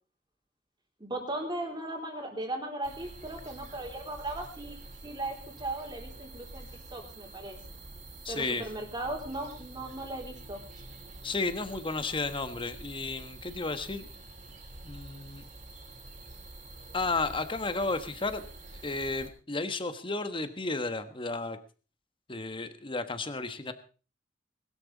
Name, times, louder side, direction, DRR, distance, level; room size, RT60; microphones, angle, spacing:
voice 1, 1.0-4.8 5.0-7.6 8.3-10.6, right 1 dB, 25° right, 2 dB, 3.5 m, -37 dB
sound 1, 2.8-19.3, right 2 dB, 40° right, 3.5 m, -47 dB
voice 2, 8.2-8.7 11.2-14.1 14.8-15.4 16.9-18.4 18.8-21.6 22.3-23.7, left 3 dB, 25° left, 10 dB, 1.3 m, -33 dB
20.5 x 12.5 x 4.1 m, 0.36 s
head